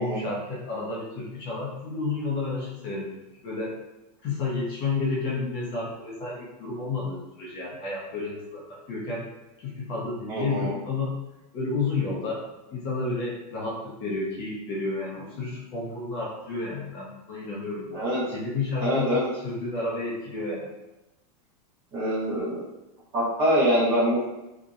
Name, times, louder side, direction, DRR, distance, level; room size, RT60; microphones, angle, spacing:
voice 1, 0.0-3.1 3.4-3.7 4.2-9.2 9.6-11.1 11.5-12.4 12.7-19.1 19.4-20.7, left 3 dB, 25° left, -6 dB, 0.5 m, -31 dB
voice 2, 10.3-10.8 17.9-18.2 18.8-19.3 21.9-22.6 23.1-24.3, equal, 30° right, -10 dB, 0.8 m, -24 dB
2.6 x 2.0 x 2.4 m, 0.96 s
supercardioid pair, 175°, 20 cm